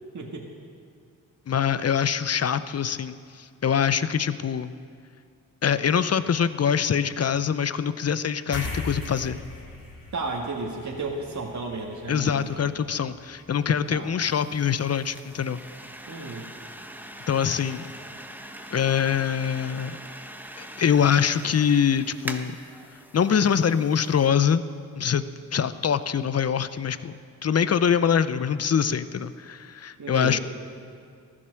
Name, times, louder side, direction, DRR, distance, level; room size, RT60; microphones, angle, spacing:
voice 1, 0.1-0.5 10.1-12.6 13.9-14.1 16.1-16.5 30.0-30.4, right 3 dB, 45° right, -1 dB, 1.9 m, -33 dB
voice 2, 1.5-4.7 5.6-9.4 12.1-15.6 17.3-17.9 18.7-20.0 20.6-22.6 23.1-24.6 25.0-25.2 25.5-27.1 27.4-30.4, left 7 dB, 40° left, 14 dB, 0.7 m, -24 dB
sound 1, 8.5-15.3, left 2 dB, 55° left, 3.2 m, -40 dB
sound 2, 14.2-24.3, right 1 dB, 5° right, 1.2 m, -42 dB
15.0 x 11.5 x 6.4 m, 2.3 s
supercardioid pair, 50°, 39 cm